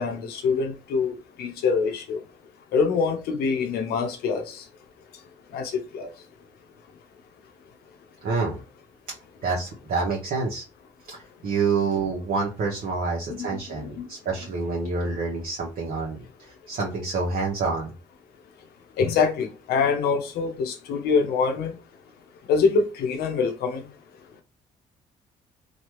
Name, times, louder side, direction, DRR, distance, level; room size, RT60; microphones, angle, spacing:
voice 1, 0.0-2.2 2.7-4.6 5.5-6.1 13.3-13.6 14.0-14.1 19.0-21.8 22.5-23.9, left 5 dB, 80° left, 0.7 m, -25 dB
voice 2, 8.2-8.6 9.4-10.6 11.1-17.9, right 4 dB, 65° right, 0.8 m, -27 dB
3.1 x 2.3 x 3.0 m
supercardioid pair, 65°, 16 cm